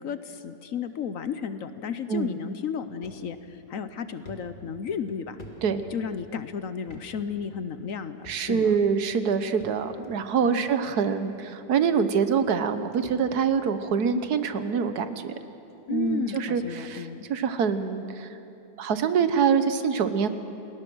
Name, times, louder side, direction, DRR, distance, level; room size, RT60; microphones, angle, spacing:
voice 1, 0.0-5.4 5.9-8.2 8.5-8.7 10.5-10.7 15.9-17.3, left 7 dB, 60° left, 11 dB, 1.2 m, -33 dB
sound 1, 3.0-3.2 3.7-3.8 4.2-6.3 6.8-7.1 7.3-7.5 8.2-8.7 9.6-10.1 11.0-11.1 12.1-12.2 12.4-13.6 14.0-14.3 15.1-15.2 15.7-15.8 16.1-16.2 16.6-16.8, equal, 30° left, 2.1 m, -47 dB
voice 2, 8.3-15.3 15.9-18.3 18.8-20.3, right 6 dB, 80° right, 11 dB, 1.5 m, -25 dB
29.5 x 20.0 x 6.3 m, 2.9 s
omnidirectional pair, 1.7 m